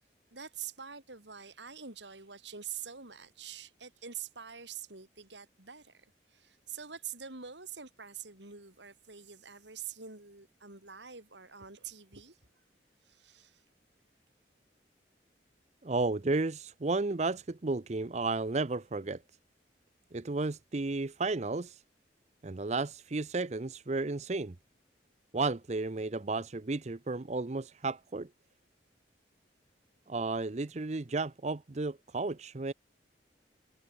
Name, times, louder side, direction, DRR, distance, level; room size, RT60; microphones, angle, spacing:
voice 1, 0.3-6.1 6.3-12.4 13.1-13.6, right 8 dB, 85° right, 5.1 m, -45 dB
voice 2, 15.8-19.2 20.1-21.8 22.4-24.5 25.3-28.3 30.1-32.7, right 3 dB, 40° right, 0.7 m, -33 dB
head